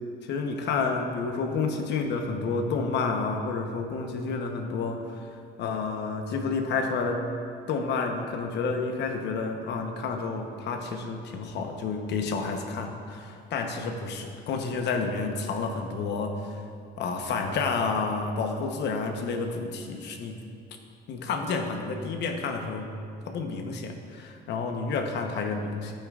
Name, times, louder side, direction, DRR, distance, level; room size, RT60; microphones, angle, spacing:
voice 1, 0.2-7.2 7.7-16.5 17.0-20.4 21.1-22.9 23.3-25.9, left 4 dB, 65° left, 4 dB, 1.0 m, -30 dB
12.0 x 8.8 x 2.5 m, 2.4 s
cardioid pair, 130°, 19 cm